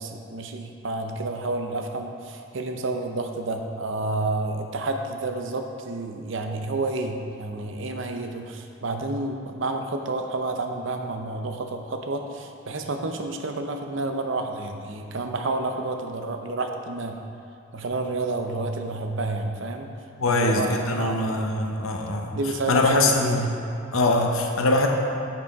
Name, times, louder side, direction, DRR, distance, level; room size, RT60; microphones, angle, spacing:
voice 1, 0.0-17.2 17.7-19.9 20.3-21.4 22.3-23.5, right 2 dB, 65° right, 4 dB, 0.6 m, -30 dB
voice 2, 20.2-22.4 22.7-23.5 23.9-24.9, left 2 dB, 80° left, 2 dB, 0.8 m, -22 dB
8.4 x 5.9 x 3.5 m, 2.7 s
head